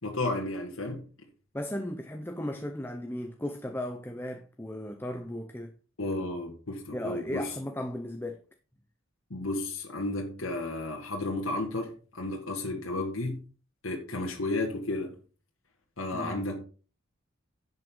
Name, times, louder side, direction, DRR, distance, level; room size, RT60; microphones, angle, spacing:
voice 1, 0.0-1.0 6.0-7.5 9.3-13.4 13.8-15.2 16.0-16.7, left 2 dB, 80° left, 2.0 m, -33 dB
voice 2, 1.5-5.7 6.9-8.4 16.1-16.5, left 1 dB, 10° left, 0.8 m, -36 dB
11.0 x 7.9 x 3.9 m
head